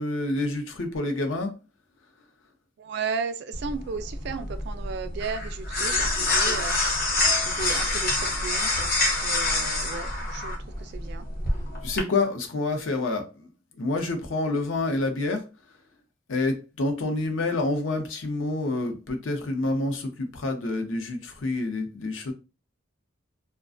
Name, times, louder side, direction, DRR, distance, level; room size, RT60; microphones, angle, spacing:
voice 1, 0.0-1.5 11.8-13.5 13.8-15.4 16.3-22.3, left 2 dB, 80° left, 0.6 m, -28 dB
voice 2, 2.8-6.8 7.5-8.9 9.2-11.3, right 5 dB, 60° right, 0.3 m, -34 dB
sound 1, 3.5-12.0, left 2 dB, 50° left, 0.8 m, -26 dB
2.4 x 2.2 x 2.4 m
head